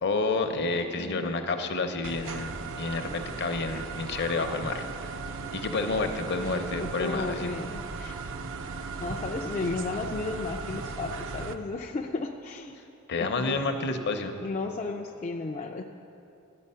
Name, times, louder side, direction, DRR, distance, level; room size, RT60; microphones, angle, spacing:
voice 1, 0.0-5.1 5.5-7.5 8.1-8.2 13.1-14.4, left 3 dB, 50° left, 7 dB, 0.7 m, -30 dB
voice 2, 1.0-1.4 6.8-8.1 9.0-12.8 13.2-13.6 13.9-14.1 14.4-15.8, left 3 dB, 30° left, 1 dB, 0.4 m, -34 dB
sound 1, 2.0-11.5, right 4 dB, 60° right, 0.5 m, -37 dB
12.0 x 9.0 x 5.6 m, 2.7 s
head